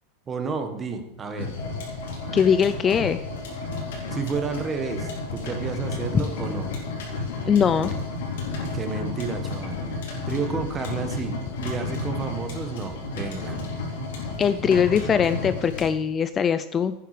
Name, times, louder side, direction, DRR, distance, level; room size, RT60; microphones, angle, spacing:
voice 1, 0.3-1.5 4.1-6.7 8.7-9.8 10.3-13.6, right 5 dB, 20° right, 7 dB, 1.5 m, -31 dB
sound 1, 1.4-15.9, left 3 dB, 85° left, 3.7 m, -32 dB
voice 2, 2.3-3.2 7.5-7.9 14.4-16.9, left 7 dB, 25° left, 12 dB, 0.4 m, -21 dB
11.0 x 9.4 x 5.0 m, 0.89 s
supercardioid pair, 145°, 0 cm